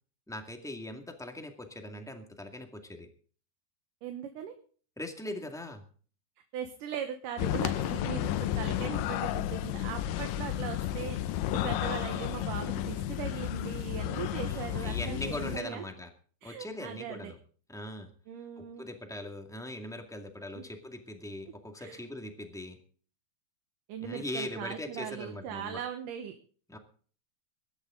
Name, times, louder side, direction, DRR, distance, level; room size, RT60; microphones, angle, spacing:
voice 1, 0.3-3.1 5.0-5.8 14.3-16.1 16.4-17.4 17.7-18.1 18.6-22.8 24.0-25.8 26.7-26.8, left 1 dB, 5° left, 4 dB, 0.6 m, -40 dB
voice 2, 4.0-4.5 6.5-15.8 16.4-17.3 18.3-18.8 20.5-20.6 21.8-22.0 23.9-26.4, right 9 dB, 70° right, 7 dB, 2.6 m, -39 dB
sound 1, 7.4-15.6, left 12 dB, 75° left, 2.2 m, -32 dB
22.5 x 11.5 x 3.8 m, 0.43 s
omnidirectional pair, 4.3 m